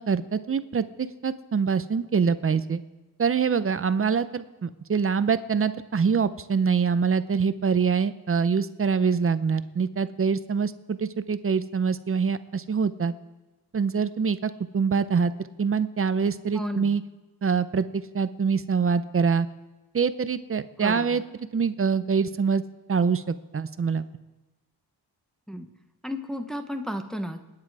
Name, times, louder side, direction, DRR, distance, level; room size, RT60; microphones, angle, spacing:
voice 1, 0.0-2.8 3.2-13.1 13.7-15.3 15.6-17.0 17.4-19.5 19.9-21.2 21.5-22.6 22.9-23.2 23.5-24.1, right 6 dB, 35° right, 13 dB, 0.6 m, -25 dB
voice 2, 16.5-17.0 20.8-21.2 25.5-25.7 26.0-27.4, equal, ahead, 5 dB, 1.0 m, -33 dB
28.0 x 9.8 x 4.8 m, 1.1 s
wide cardioid pair, 160°, 39 cm